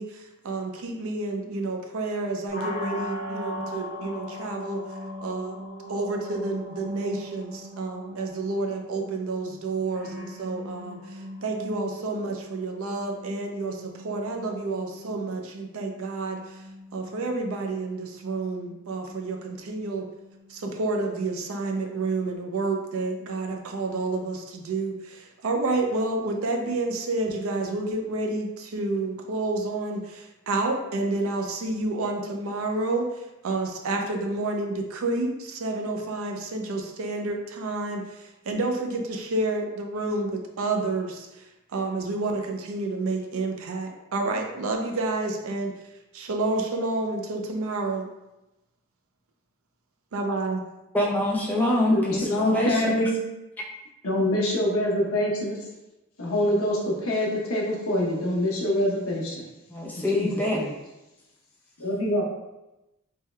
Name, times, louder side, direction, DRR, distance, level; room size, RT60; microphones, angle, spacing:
voice 1, 0.0-4.8 5.2-5.6 5.9-16.6 16.9-20.1 20.5-41.4 41.7-45.7 46.1-48.0 50.1-50.6, right 2 dB, 70° right, 3 dB, 0.5 m, -29 dB
sound 1, 2.5-22.3, left 1 dB, 35° right, 1.0 m, -40 dB
voice 2, 50.9-53.1 59.7-60.6, left 1 dB, 10° left, -3 dB, 0.5 m, -24 dB
voice 3, 51.9-53.2 54.0-55.6 56.2-59.4 59.9-60.7 61.8-62.2, left 1 dB, 70° left, -2 dB, 0.8 m, -25 dB
3.4 x 2.2 x 3.1 m, 0.97 s
head